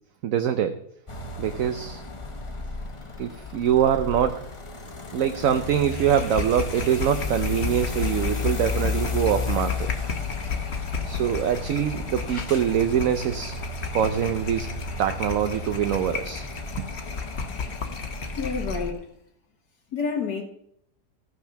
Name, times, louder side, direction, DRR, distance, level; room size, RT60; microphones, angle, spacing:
voice 1, 0.2-0.8 1.4-2.0 3.2-4.4 5.1-9.9 11.1-13.6 13.9-14.7 15.0-16.5, right 9 dB, 65° right, 1.0 m, -24 dB
sound 1, 1.1-18.9, left 4 dB, 25° left, 0.7 m, -33 dB
sound 2, 5.5-18.9, left 5 dB, 45° left, 1.2 m, -34 dB
voice 2, 18.4-19.1 19.9-20.4, left 5 dB, 70° left, 1.7 m, -28 dB
13.5 x 6.3 x 5.8 m
omnidirectional pair, 1.8 m